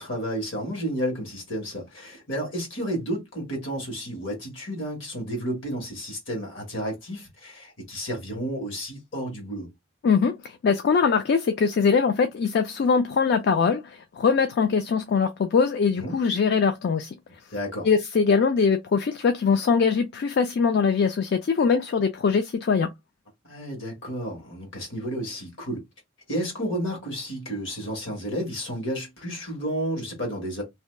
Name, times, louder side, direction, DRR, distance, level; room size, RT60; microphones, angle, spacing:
voice 1, 0.0-9.7 16.0-16.2 17.5-17.9 23.4-25.8 26.3-30.6, equal, 70° left, 1.4 m, -31 dB
voice 2, 10.0-17.1 17.8-22.9, left 5 dB, 55° left, 0.3 m, -22 dB
2.7 x 2.3 x 3.1 m
head